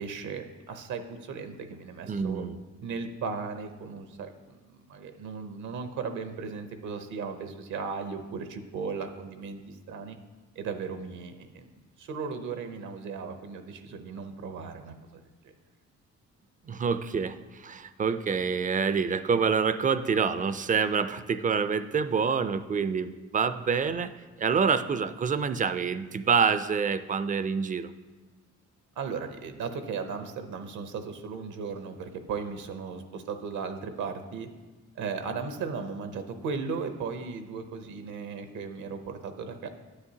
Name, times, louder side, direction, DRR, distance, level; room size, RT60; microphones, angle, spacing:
voice 1, 0.0-2.5 2.8-10.2 10.6-15.5 29.0-34.5 34.9-39.7, right 5 dB, 75° right, 8 dB, 0.7 m, -36 dB
voice 2, 2.1-2.6 16.7-24.1 24.4-27.9, right 6 dB, 25° right, 12 dB, 0.3 m, -27 dB
9.7 x 7.5 x 2.8 m, 1.3 s
cardioid pair, 90°, 30 cm